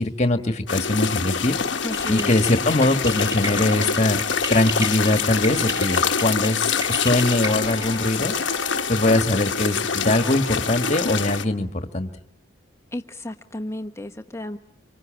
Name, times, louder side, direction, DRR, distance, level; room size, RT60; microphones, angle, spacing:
voice 1, 0.0-1.6 2.0-8.3 8.9-12.1, left 2 dB, 35° left, 7 dB, 1.6 m, -22 dB
sound 1, 0.7-11.4, left 6 dB, 60° left, 1.1 m, -25 dB
voice 2, 1.8-2.3 12.9-14.6, left 1 dB, 15° left, 6 dB, 1.1 m, -32 dB
sound 2, 1.9-8.1, equal, 15° right, 2.9 m, -34 dB
Ringtone, 2.0-11.5, right 3 dB, 80° right, 6.6 m, -42 dB
26.5 x 25.0 x 9.0 m, 0.75 s
head